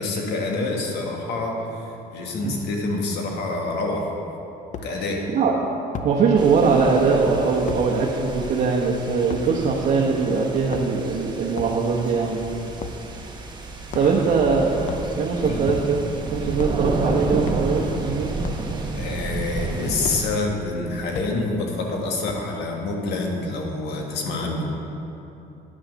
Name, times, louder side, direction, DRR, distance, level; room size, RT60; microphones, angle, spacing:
voice 1, 0.0-4.1 4.8-5.2 13.9-14.1 15.4-15.6 18.9-24.7, left 2 dB, 80° left, 0 dB, 1.6 m, -27 dB
sound 1, 4.7-4.9 5.9-6.1 7.7-7.8 9.3-9.5 10.5-11.1 11.5-11.8 12.8-13.0 13.9-14.3 14.8-15.1 15.7-16.1 16.5-16.8 17.4-17.7 18.4-18.7 20.0-20.2 21.1-21.3 22.3-22.6, left 5 dB, 45° left, 0.7 m, -33 dB
voice 2, 6.0-12.4 13.9-14.7 15.2-16.0 16.3-18.3, right 5 dB, 50° right, -3 dB, 1.1 m, -21 dB
sound 2, 6.4-20.3, right 2 dB, 25° right, 1.1 m, -31 dB
9.6 x 6.3 x 6.3 m, 2.9 s
cardioid pair, 110°, 17 cm